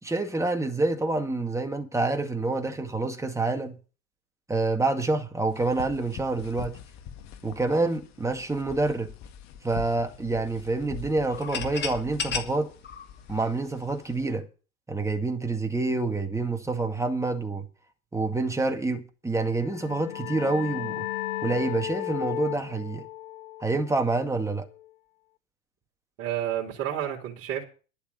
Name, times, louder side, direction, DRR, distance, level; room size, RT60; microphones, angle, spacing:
voice 1, 0.0-3.8 4.5-6.8 7.4-9.1 9.6-12.7 13.3-14.5 14.9-17.7 18.1-21.1 21.4-23.1 23.6-24.7, right 3 dB, 5° right, 2.0 m, -27 dB
sound 1, 5.5-14.3, left 8 dB, 40° left, 2.1 m, -44 dB
sound 2, 11.3-14.1, left 6 dB, 25° left, 2.6 m, -34 dB
sound 3, 19.5-24.9, left 15 dB, 60° left, 0.8 m, -35 dB
voice 2, 26.2-27.6, right 10 dB, 35° right, 4.1 m, -30 dB
11.5 x 6.9 x 8.7 m
hypercardioid pair, 95°, 40 cm